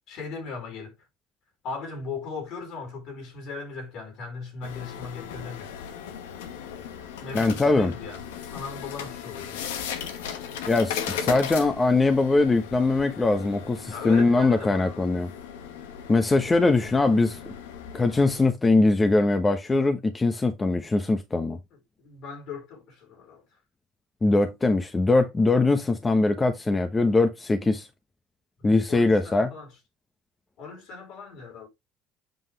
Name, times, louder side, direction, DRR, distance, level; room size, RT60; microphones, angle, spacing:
voice 1, 0.1-1.0 1.6-5.8 7.2-9.7 13.9-15.0 21.7-23.5 28.9-29.7 30.6-31.7, left 4 dB, 65° left, 4.3 m, -38 dB
sound 1, 4.6-18.5, left 8 dB, 85° left, 1.2 m, -37 dB
voice 2, 7.3-7.9 10.7-15.3 16.1-17.5 17.9-21.6 24.2-27.9 28.6-29.5, left 3 dB, 25° left, 1.1 m, -22 dB
7.9 x 5.4 x 3.2 m
hypercardioid pair, 75°, 0 cm